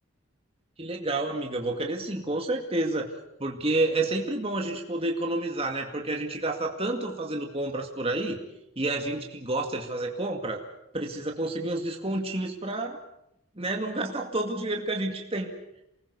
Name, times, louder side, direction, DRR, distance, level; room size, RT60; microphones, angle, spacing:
voice 1, 0.8-3.1 3.4-8.4 8.8-10.6 10.9-13.0 13.6-15.5, right 2 dB, 25° right, 2 dB, 2.2 m, -29 dB
28.5 x 20.5 x 7.0 m, 0.82 s
head